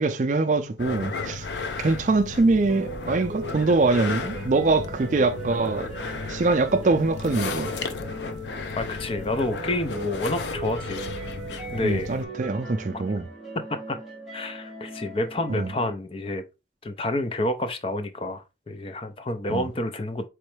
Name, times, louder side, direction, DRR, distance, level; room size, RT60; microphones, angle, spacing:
voice 1, 0.0-1.5 1.8-5.9 6.3-7.7 11.8-13.3 15.5-15.7 19.5-19.7, right 3 dB, 45° right, 0.4 m, -23 dB
sound 1, 0.8-12.2, left 4 dB, 80° left, 0.5 m, -34 dB
sound 2, 2.7-15.9, right 2 dB, ahead, 0.8 m, -38 dB
voice 2, 8.8-11.1 11.7-12.1 13.5-14.0 14.3-16.4 16.8-20.3, left 1 dB, 30° left, 0.5 m, -29 dB
4.3 x 3.1 x 3.2 m
head